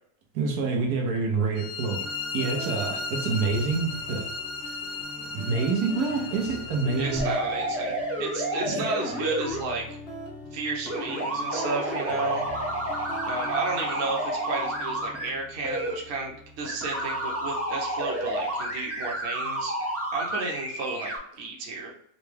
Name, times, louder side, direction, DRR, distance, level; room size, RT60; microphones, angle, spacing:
voice 1, 0.3-2.0 2.3-4.3 5.3-7.3 8.7-8.9, right 4 dB, 90° right, 1 dB, 1.3 m, -27 dB
sound 1, 1.5-7.4, left 4 dB, 80° left, 1.3 m, -35 dB
sound 2, 2.0-20.0, left 1 dB, 55° left, 0.8 m, -44 dB
voice 2, 7.0-10.0 10.5-12.5 13.3-21.9, right 3 dB, 50° right, -1 dB, 1.0 m, -32 dB
sound 3, 7.1-9.6 10.9-15.3 15.6-15.9 16.6-21.2, right 1 dB, 15° right, 0.4 m, -30 dB
4.0 x 2.2 x 3.2 m, 0.71 s
omnidirectional pair, 1.6 m